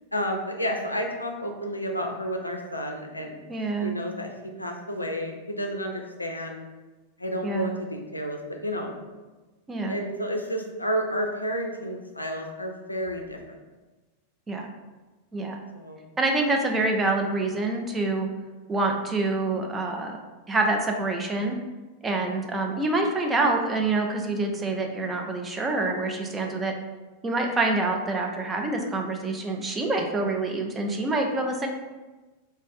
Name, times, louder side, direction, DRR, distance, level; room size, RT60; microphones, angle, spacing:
voice 1, 0.1-3.4 3.8-4.3 4.6-6.6 7.2-9.0 9.9-13.6 15.7-16.0, equal, 85° left, 3 dB, 0.4 m, -31 dB
voice 2, 3.5-3.9 7.4-7.7 9.7-10.0 14.5-14.7 15.3-15.6 16.2-18.3 18.7-20.2 20.5-21.6 22.0-26.7 27.2-31.7, right 2 dB, 15° right, 2 dB, 0.4 m, -26 dB
2.5 x 2.5 x 3.7 m, 1.2 s
figure-of-eight pair, 90°, 0 cm